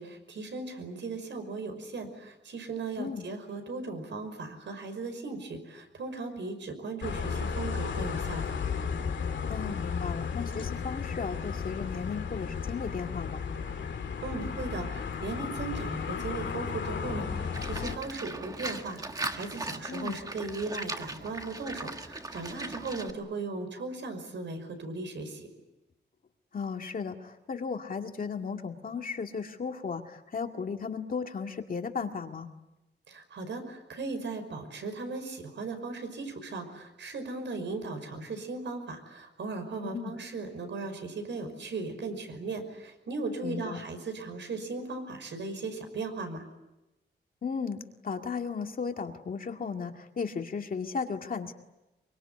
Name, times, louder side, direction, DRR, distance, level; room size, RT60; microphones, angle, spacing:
voice 1, 0.0-8.6 14.2-25.5 33.1-46.4, right 3 dB, 80° right, 7 dB, 5.6 m, -37 dB
sound 1, 7.0-18.0, left 6 dB, 85° left, 2.6 m, -34 dB
voice 2, 9.5-13.4 19.9-20.2 26.5-32.5 39.8-40.1 43.4-43.8 47.4-51.5, left 5 dB, 50° left, 4 dB, 2.1 m, -35 dB
sound 2, 16.7-20.5, left 2 dB, ahead, 3.1 m, -47 dB
Livestock farm animals working animals, 17.5-23.1, right 2 dB, 20° right, 1.6 m, -38 dB
25.0 x 24.5 x 9.7 m, 0.99 s
wide cardioid pair, 165°, 19 cm